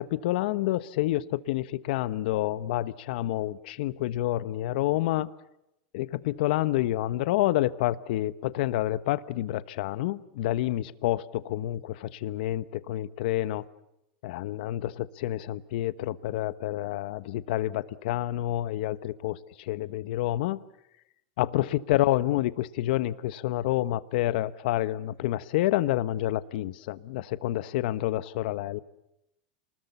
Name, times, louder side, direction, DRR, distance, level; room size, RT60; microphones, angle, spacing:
voice 1, 0.0-5.3 5.9-13.6 14.2-20.6 21.4-28.8, left 15 dB, 65° left, 15 dB, 1.2 m, -28 dB
29.0 x 20.5 x 7.1 m, 0.85 s
supercardioid pair, 145°, 5 cm